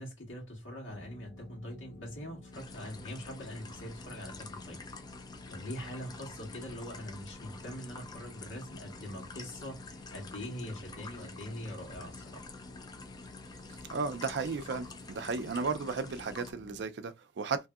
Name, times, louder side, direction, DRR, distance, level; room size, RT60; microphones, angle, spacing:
voice 1, 0.0-4.8 5.5-12.5, equal, 85° left, 1.8 m, -43 dB
sound 1, 0.9-16.8, left 2 dB, 40° left, 0.8 m, -52 dB
sound 2, 2.5-16.5, left 3 dB, 20° left, 0.3 m, -48 dB
voice 2, 13.9-17.7, right 4 dB, 60° right, 0.4 m, -34 dB
3.2 x 2.6 x 2.3 m
head